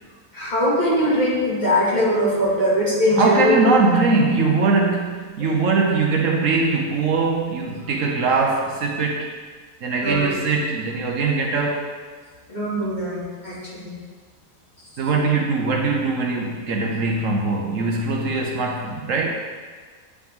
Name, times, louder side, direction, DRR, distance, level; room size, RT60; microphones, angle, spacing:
voice 1, 0.3-3.6 5.4-5.5 10.0-10.3 12.5-13.5 13.8-14.0, equal, 30° left, -8 dB, 2.4 m, -21 dB
voice 2, 3.1-9.3 9.8-11.9 15.0-19.3, right 3 dB, 65° right, 0 dB, 1.2 m, -21 dB
9.1 x 5.1 x 3.6 m, 1.5 s
omnidirectional pair, 1.5 m